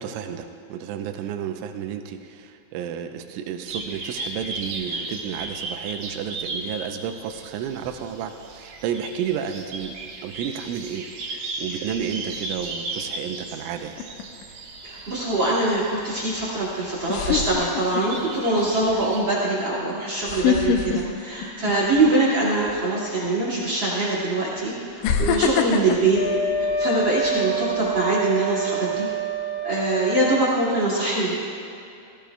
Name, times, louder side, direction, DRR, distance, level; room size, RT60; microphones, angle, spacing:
voice 1, 0.0-10.0 10.2-11.1 11.6-14.0, right 8 dB, 85° right, 6 dB, 3.1 m, -31 dB
sound 1, 3.7-19.2, right 2 dB, 65° right, 2.8 m, -36 dB
sound 2, 14.0-14.4 16.4-16.5 17.1-18.2 18.7-18.9 20.2-22.1 22.4-22.7 23.7-23.8 25.0-27.3 27.7-28.0, left 7 dB, 80° left, 2.9 m, -24 dB
voice 2, 14.8-26.2 26.6-29.1 29.6-31.3, right 2 dB, 45° right, -6 dB, 1.6 m, -23 dB
Wind instrument woodwind instrument, 26.1-30.4, right 3 dB, 55° left, 2.5 m, -27 dB
17.5 x 17.0 x 2.3 m, 2.6 s
omnidirectional pair, 5.7 m